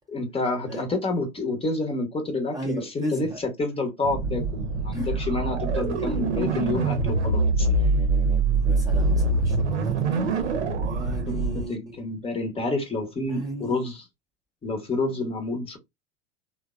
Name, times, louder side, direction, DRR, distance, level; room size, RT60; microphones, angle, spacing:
voice 1, 0.1-3.3 3.6-7.7 9.1-9.2 11.3-11.4 11.7-13.9 14.6-15.8, left 2 dB, 15° left, 0.8 m, -29 dB
voice 2, 2.5-3.4 4.9-5.1 5.9-6.1 8.6-10.5 10.8-12.0 13.3-13.9, right 1 dB, 10° right, 0.6 m, -36 dB
sound 1, 4.0-11.7, right 3 dB, 75° right, 0.7 m, -24 dB
3.2 x 2.2 x 2.3 m
figure-of-eight pair, 80°, 34 cm